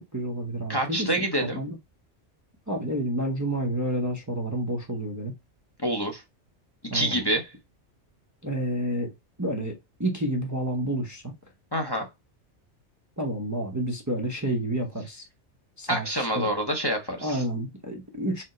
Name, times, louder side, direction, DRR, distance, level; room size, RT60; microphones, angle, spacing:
voice 1, 0.0-1.3 1.6-1.8 2.7-5.4 6.9-7.4 8.4-11.4 13.2-15.3 15.8-16.5 17.2-18.4, right 1 dB, 20° right, 0.6 m, -30 dB
voice 2, 0.7-1.6 5.8-6.2 6.9-7.4 11.7-12.1 15.9-17.4, right 1 dB, 25° left, 0.6 m, -27 dB
4.3 x 2.1 x 3.7 m
omnidirectional pair, 1.2 m